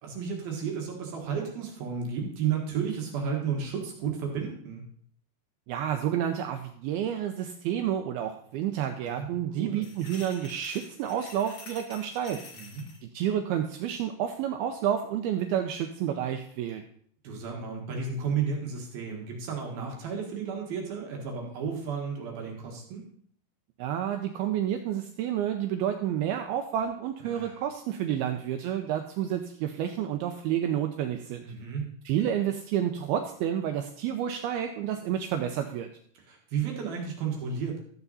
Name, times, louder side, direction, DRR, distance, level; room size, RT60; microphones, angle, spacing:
voice 1, 0.0-4.8 9.0-9.8 12.5-12.8 17.2-23.0 27.2-27.6 28.1-28.3 31.4-31.8 36.3-37.8, right 6 dB, 65° right, 0 dB, 3.2 m, -33 dB
voice 2, 5.7-12.4 13.0-16.8 23.8-31.4 32.1-35.9, right 10 dB, 85° right, 6 dB, 2.3 m, -30 dB
sound 1, 9.7-13.0, left 3 dB, 40° left, 2.0 m, -47 dB
13.5 x 8.2 x 4.1 m, 0.62 s
omnidirectional pair, 5.0 m